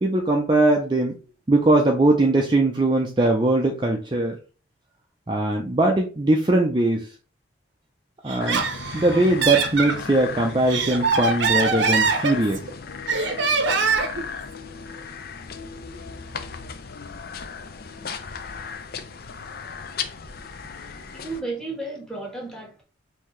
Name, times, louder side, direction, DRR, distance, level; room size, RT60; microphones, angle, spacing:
voice 1, 0.0-1.1 1.5-4.4 5.3-7.1 8.2-8.6 8.9-12.7, right 2 dB, 25° right, 0.5 m, -20 dB
Laughter, 8.3-10.0 10.5-12.7 13.1-14.2, right 4 dB, 70° right, 0.7 m, -23 dB
sound 1, 8.4-21.4, left 5 dB, 50° left, 0.5 m, -36 dB
voice 2, 20.8-22.8, right 2 dB, 5° left, 1.2 m, -34 dB
5.5 x 2.7 x 3.1 m
head